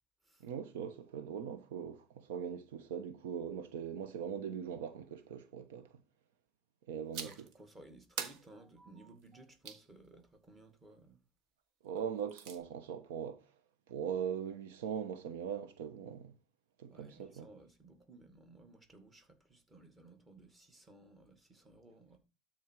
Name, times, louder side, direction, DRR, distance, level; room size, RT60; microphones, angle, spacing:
voice 1, 0.4-5.9 6.9-7.3 11.8-13.4 13.9-16.3 16.8-17.5, right 8 dB, 90° right, 1.1 m, -40 dB
sound 1, 7.1-7.5 8.2-9.9 12.0-12.6, right 7 dB, 60° right, 1.5 m, -44 dB
voice 2, 7.2-11.2 16.9-22.2, right 2 dB, 15° right, 2.1 m, -58 dB
12.5 x 4.5 x 4.7 m
supercardioid pair, 125°, 0 cm